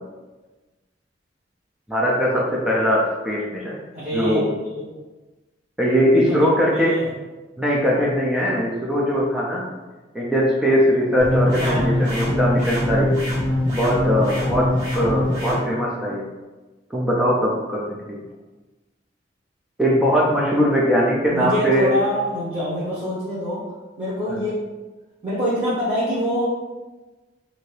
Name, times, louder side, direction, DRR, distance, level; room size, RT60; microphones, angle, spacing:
voice 1, 1.9-3.8 4.1-4.5 5.8-7.0 7.6-9.7 10.1-13.1 13.7-16.3 16.9-18.2 19.8-21.9 24.3-24.4, equal, 5° right, -5 dB, 0.4 m, -20 dB
voice 2, 3.9-4.4 6.1-7.1 11.6-11.9 21.3-23.6 24.0-24.6 25.2-26.6, equal, 30° right, -10 dB, 0.9 m, -25 dB
sound 1, 11.2-15.6, left 1 dB, 75° right, 1.4 m, -22 dB
2.7 x 2.6 x 3.2 m, 1.2 s
head